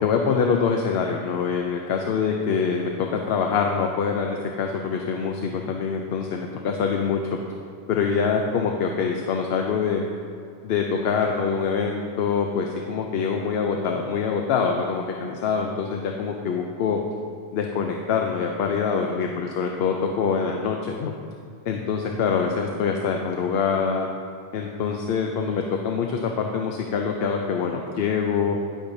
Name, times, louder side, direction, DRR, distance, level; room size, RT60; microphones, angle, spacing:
voice 1, 0.0-7.2 7.9-10.1 10.6-17.0 17.5-21.1 21.7-24.1 24.5-28.6, left 6 dB, 75° left, 2 dB, 0.8 m, -25 dB
9.9 x 8.7 x 2.6 m, 2.4 s
omnidirectional pair, 1.1 m